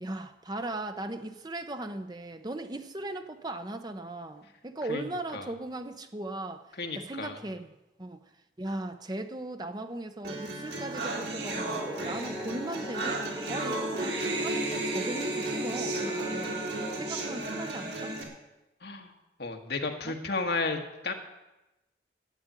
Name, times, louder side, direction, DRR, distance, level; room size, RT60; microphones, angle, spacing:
voice 1, 0.0-6.7 6.9-8.2 8.6-16.6 17.0-18.2 20.0-20.1, right 2 dB, 25° right, 0.7 m, -38 dB
voice 2, 6.8-7.4 18.8-19.1 19.4-21.1, left 3 dB, 65° left, 1.6 m, -33 dB
sound 1, 10.2-18.2, right 2 dB, 75° right, 3.2 m, -33 dB
sound 2, 11.4-17.2, left 1 dB, 5° left, 2.9 m, -41 dB
12.5 x 8.6 x 9.0 m
head